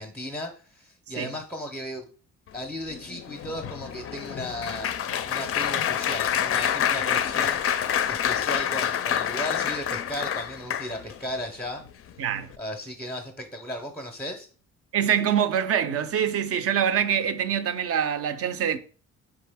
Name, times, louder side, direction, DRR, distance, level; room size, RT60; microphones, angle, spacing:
voice 1, 0.0-2.1 2.5-4.9 5.2-7.6 8.1-11.8 12.6-14.5, left 1 dB, 5° left, 0.6 m, -36 dB
Applause, 2.9-11.2 11.8-12.1 12.4-12.6, left 9 dB, 50° left, 0.4 m, -27 dB
voice 2, 12.2-12.5 14.9-18.8, right 8 dB, 50° right, 0.5 m, -25 dB
3.8 x 3.5 x 3.4 m
cardioid pair, 90°, 30 cm